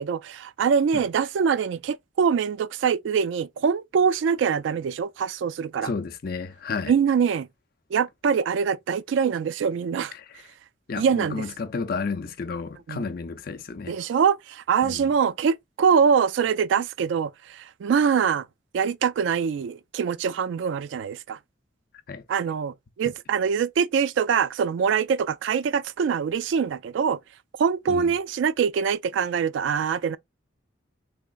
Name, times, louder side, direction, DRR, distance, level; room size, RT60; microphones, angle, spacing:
voice 1, 0.0-5.9 6.9-7.5 7.9-10.1 10.9-11.5 12.9-13.1 13.9-18.5 18.7-21.4 22.3-27.2 27.6-30.2, right 6 dB, 75° right, 0.3 m, -24 dB
voice 2, 5.8-6.9 10.1-10.2 10.9-14.0 14.8-15.1 22.1-22.2 27.9-28.1, left 4 dB, 50° left, 0.5 m, -32 dB
3.5 x 3.0 x 2.4 m
head